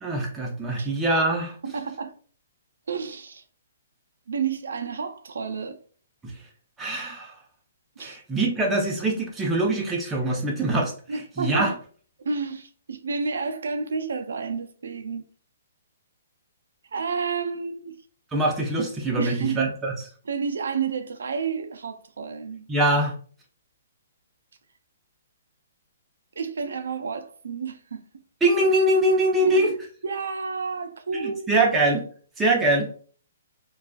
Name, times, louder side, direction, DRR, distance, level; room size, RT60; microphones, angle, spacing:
voice 1, 0.0-1.6 6.2-6.3 6.8-7.3 8.0-10.9 11.4-11.7 18.3-19.9 22.7-23.1 28.4-29.7 31.1-32.0 32.4-33.0, right 1 dB, 10° right, 0.5 m, -23 dB
voice 2, 1.6-2.1 2.9-3.4 4.3-5.8 8.0-8.2 11.1-11.7 12.2-15.2 16.9-18.0 19.2-19.7 20.3-22.7 26.4-28.0 29.4-29.7 30.0-31.5, right 5 dB, 80° right, 0.3 m, -30 dB
2.4 x 2.3 x 2.3 m
hypercardioid pair, 155°, 0 cm